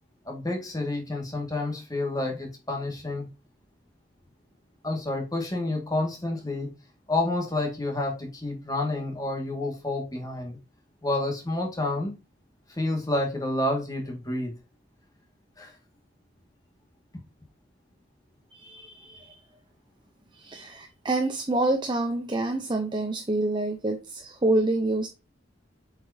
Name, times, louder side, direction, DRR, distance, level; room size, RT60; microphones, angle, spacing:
voice 1, 0.3-3.3 4.8-6.7 7.1-10.6 11.0-12.1 12.7-14.5 15.6-15.7, left 2 dB, 20° left, 1.9 m, -29 dB
voice 2, 18.5-19.4 20.3-25.1, right 2 dB, 25° right, 0.7 m, -27 dB
7.8 x 4.9 x 2.7 m
head